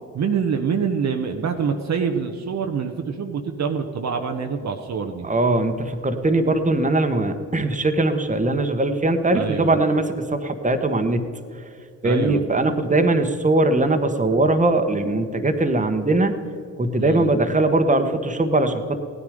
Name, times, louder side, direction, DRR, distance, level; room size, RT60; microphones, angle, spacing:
voice 1, 0.1-5.3 9.3-9.8 12.0-12.4 17.0-17.3, right 6 dB, 55° right, 4 dB, 1.0 m, -25 dB
voice 2, 5.2-11.2 12.0-16.3 16.8-19.0, right 2 dB, 20° right, 7 dB, 1.4 m, -20 dB
16.5 x 10.0 x 5.1 m, 2.4 s
supercardioid pair, 50°, 34 cm